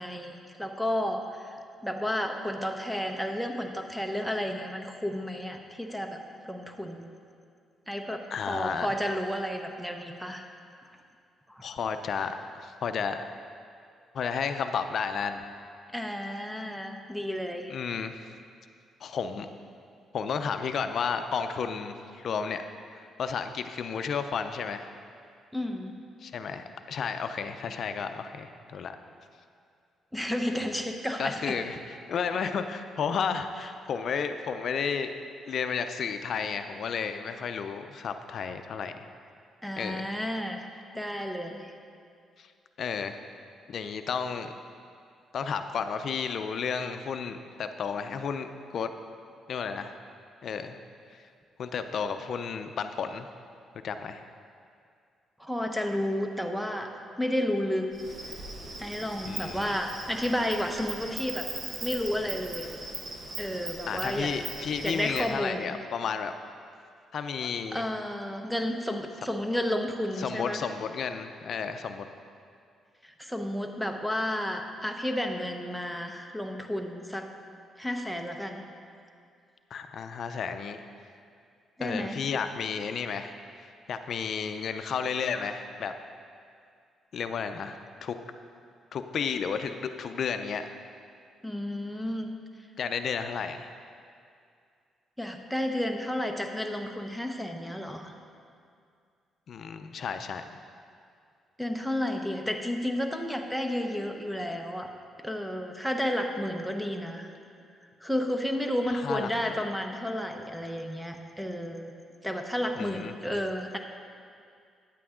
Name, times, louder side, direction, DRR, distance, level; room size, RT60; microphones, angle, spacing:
voice 1, 0.0-1.5 1.8-6.2 6.4-7.1 7.9-10.5 11.5-11.6 15.9-17.7 25.5-26.0 30.1-31.6 39.6-40.6 40.9-41.7 55.4-57.9 58.8-61.5 61.8-62.7 63.4-64.3 64.8-65.8 67.7-70.7 73.0-77.3 77.8-78.7 81.8-82.2 91.4-92.3 95.2-98.1 101.6-104.9 105.2-107.3 108.0-111.9 112.2-113.8, left 1 dB, ahead, 4 dB, 0.8 m, -32 dB
voice 2, 8.3-9.0 11.6-13.2 14.1-15.4 17.7-18.3 19.0-19.5 20.1-22.6 22.9-24.9 26.2-29.0 31.2-35.1 35.5-39.0 39.8-40.1 42.4-42.5 42.8-43.2 43.7-44.5 45.3-48.9 49.5-50.0 50.4-50.8 51.1-51.3 51.6-53.3 53.8-54.2 59.2-59.8 63.9-66.3 67.1-67.9 70.2-72.1 79.7-80.8 81.8-85.9 87.1-88.2 88.9-90.7 92.8-93.7 99.5-100.4 108.9-109.6 112.7-113.1, left 6 dB, 60° left, 8 dB, 0.5 m, -32 dB
Insect, 57.9-65.3, right 3 dB, 45° right, 1.3 m, -40 dB
9.9 x 8.4 x 3.7 m, 2.3 s
cardioid pair, 90°, 0 cm